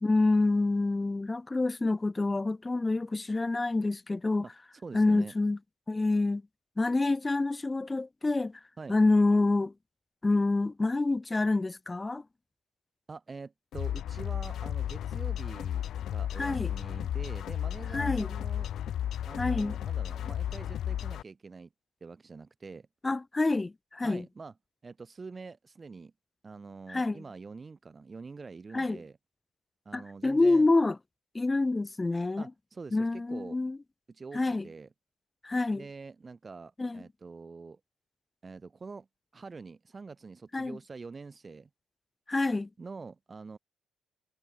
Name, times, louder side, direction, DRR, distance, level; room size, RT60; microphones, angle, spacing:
voice 1, 0.0-4.4 4.9-5.6 5.9-6.4 6.8-8.6 8.9-9.7 10.2-12.2 16.4-16.7 17.9-18.3 19.4-19.8 23.0-24.2 26.9-27.2 28.7-29.0 29.9-31.0 31.3-32.5 32.9-33.8 34.3-34.7 35.4-35.8 36.8-37.0 40.5-40.8 42.3-42.7, left 2 dB, 20° left, 0.3 m, -27 dB
voice 2, 4.4-5.3 8.8-9.0 13.1-18.7 19.3-21.7 22.0-22.9 24.0-24.5 24.8-26.1 26.4-29.2 29.9-30.7 32.4-33.6 34.1-34.9 35.7-37.8 38.4-39.1 39.3-41.7 42.8-43.6, right 4 dB, 30° right, 5.6 m, -45 dB
sound 1, 13.7-21.2, left 10 dB, 70° left, 0.7 m, -33 dB
cardioid pair, 90°, 0 cm